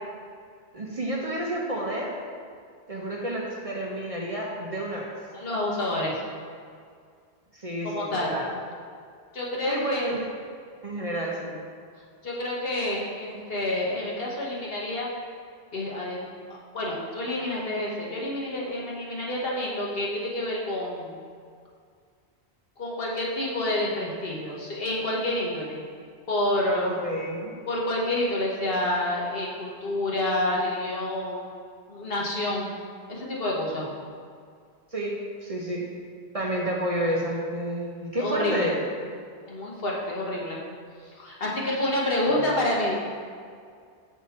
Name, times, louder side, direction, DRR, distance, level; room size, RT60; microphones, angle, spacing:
voice 1, 0.7-2.1 2.9-5.1 7.5-8.5 9.7-10.3 10.8-11.5 26.8-27.6 34.9-35.9 36.3-38.8 42.3-42.4, right 1 dB, 35° right, -2 dB, 0.8 m, -30 dB
voice 2, 5.3-6.2 7.8-8.3 9.3-10.1 12.2-15.1 15.7-21.2 22.8-25.8 26.3-26.9 27.7-31.5 31.9-32.8 33.1-33.9 38.2-38.7 39.5-40.6 41.1-43.0, left 1 dB, 65° left, -4 dB, 1.4 m, -28 dB
6.1 x 5.7 x 4.3 m, 2.2 s
omnidirectional pair, 1.1 m